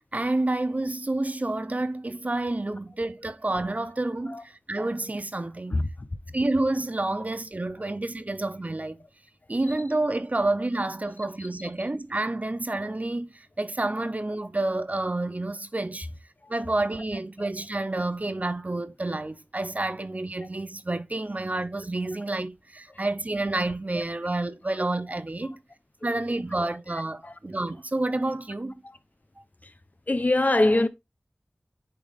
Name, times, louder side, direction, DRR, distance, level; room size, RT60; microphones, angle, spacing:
voice 1, 0.1-5.8 6.3-9.0 9.5-16.1 16.5-25.6 26.0-28.8, right 2 dB, 40° right, 0.6 m, -29 dB
voice 2, 30.1-30.9, left 2 dB, 45° left, 0.8 m, -22 dB
9.7 x 3.6 x 3.6 m
wide cardioid pair, 40°, 4 cm